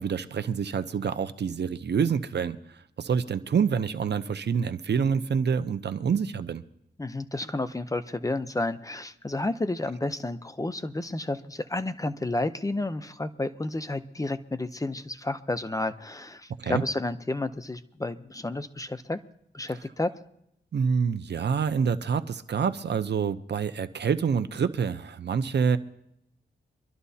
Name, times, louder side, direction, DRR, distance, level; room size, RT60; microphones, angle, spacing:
voice 1, 0.0-6.6 16.6-16.8 20.7-25.8, right 6 dB, 65° right, 11 dB, 0.7 m, -27 dB
voice 2, 7.0-19.2 19.5-20.1, left 2 dB, 20° left, 10 dB, 0.7 m, -31 dB
24.5 x 12.5 x 2.8 m, 0.77 s
wide cardioid pair, 85°, 19 cm